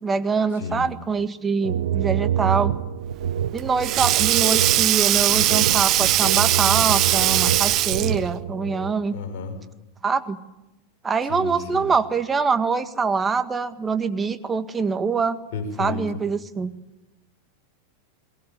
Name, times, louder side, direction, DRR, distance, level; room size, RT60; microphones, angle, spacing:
voice 1, 0.0-2.7 3.5-9.2 10.0-10.4 11.0-15.4 15.8-16.7, right 5 dB, 20° right, 10 dB, 1.8 m, -24 dB
voice 2, 0.5-0.9 9.1-9.6 11.3-11.9 15.5-16.0, left 4 dB, 60° left, 6 dB, 5.6 m, -32 dB
sound 1, 1.6-8.9, right 9 dB, 75° right, 1.1 m, -27 dB
Sink (filling or washing), 3.2-8.3, right 15 dB, 40° right, 0.8 m, -20 dB
22.0 x 20.0 x 10.0 m, 0.99 s
hypercardioid pair, 95°, 0 cm